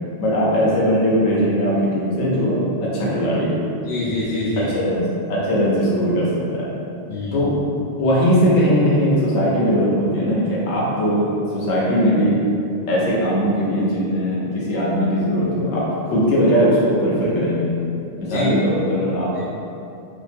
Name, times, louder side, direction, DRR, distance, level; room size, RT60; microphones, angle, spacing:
voice 1, 0.2-2.6 2.9-3.6 4.7-5.0 5.3-6.3 6.5-6.6 7.3-7.5 8.0-11.3 11.5-12.3 12.9-17.7 18.2-19.5, equal, 90° left, -6 dB, 1.0 m, -19 dB
voice 2, 3.9-4.7 7.1-7.4 18.2-18.5 19.3-19.5, left 2 dB, 55° left, -10 dB, 1.1 m, -25 dB
2.8 x 2.5 x 2.4 m, 2.6 s
omnidirectional pair, 1.3 m